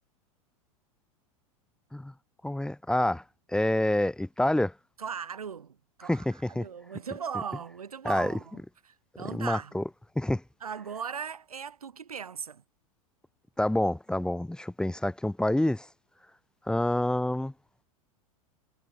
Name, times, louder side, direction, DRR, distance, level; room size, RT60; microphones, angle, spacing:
voice 1, 2.4-3.2 3.5-4.7 6.1-6.6 8.0-8.3 9.2-9.8 10.1-10.4 13.6-15.9 16.7-17.5, left 1 dB, 5° left, 1.4 m, -27 dB
voice 2, 5.0-9.7 10.6-12.6, right 7 dB, 90° right, 1.8 m, -38 dB
hypercardioid pair, 95°, 18 cm